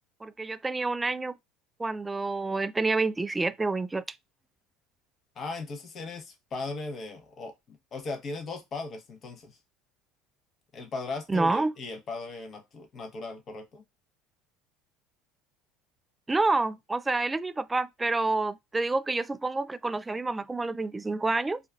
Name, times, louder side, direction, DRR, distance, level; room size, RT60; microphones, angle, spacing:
voice 1, 0.2-1.3 1.8-4.0 11.3-11.7 16.3-21.6, right 3 dB, 15° right, 0.3 m, -28 dB
voice 2, 5.3-9.6 10.7-13.8, left 3 dB, 40° left, 1.1 m, -38 dB
4.4 x 2.6 x 2.3 m
hypercardioid pair, 70°, 0 cm